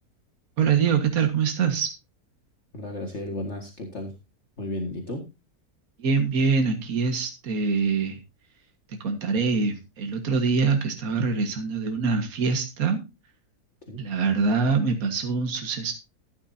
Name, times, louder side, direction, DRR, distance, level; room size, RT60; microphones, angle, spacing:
voice 1, 0.6-1.9 6.0-8.2 9.0-13.0 14.0-15.9, right 5 dB, 65° right, 5 dB, 2.0 m, -24 dB
voice 2, 2.7-4.1 4.6-5.3 13.9-14.0, left 1 dB, 45° left, 2 dB, 2.1 m, -33 dB
14.0 x 12.0 x 2.7 m, 0.27 s
omnidirectional pair, 1.7 m